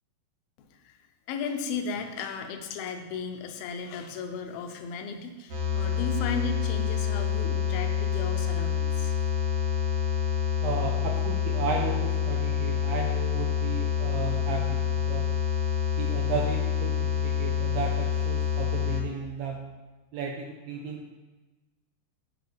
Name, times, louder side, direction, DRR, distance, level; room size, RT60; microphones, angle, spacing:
voice 1, 1.3-9.1, left 5 dB, 80° left, 5 dB, 2.2 m, -35 dB
sound 1, 5.5-19.0, left 9 dB, 60° right, 1.8 m, -27 dB
voice 2, 10.6-15.3 16.0-19.6 20.1-21.0, right 5 dB, 80° right, 0 dB, 2.1 m, -34 dB
11.5 x 4.7 x 3.2 m, 1.1 s
omnidirectional pair, 4.8 m